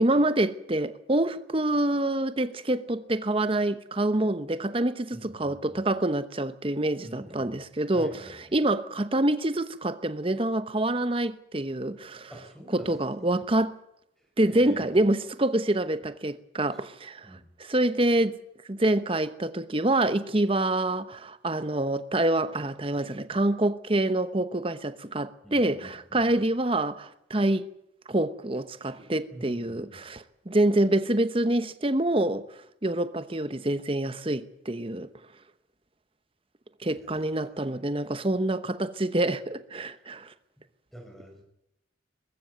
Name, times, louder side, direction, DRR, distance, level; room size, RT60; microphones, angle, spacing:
voice 1, 0.0-12.3 12.7-13.8 14.4-18.4 18.7-27.7 28.1-32.5 32.8-35.1 36.8-40.3, right 1 dB, 30° right, 1.0 m, -26 dB
voice 2, 5.1-5.8 7.0-7.5 7.9-8.6 12.3-12.9 14.2-15.0 16.7-16.8 17.2-17.5 25.4-26.3 29.3-30.0 37.0-37.4 40.9-41.4, right 1 dB, ahead, 5.3 m, -47 dB
21.0 x 15.0 x 9.3 m
head